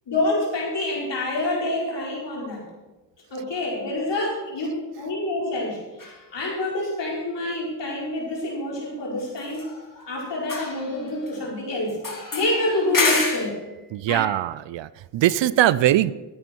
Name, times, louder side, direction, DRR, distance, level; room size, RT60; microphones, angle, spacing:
voice 1, 0.1-2.6 3.3-5.8 6.3-9.7 10.0-13.5 14.1-14.2, left 2 dB, 75° left, -4 dB, 4.9 m, -27 dB
sound 1, 6.0-6.2 9.4-10.1 10.4-11.5 12.0-13.6, left 3 dB, 50° left, 2.8 m, -28 dB
voice 2, 13.9-16.1, right 13 dB, 85° right, 18 dB, 0.6 m, -21 dB
13.5 x 9.5 x 4.6 m, 1.1 s
cardioid pair, 45°, 43 cm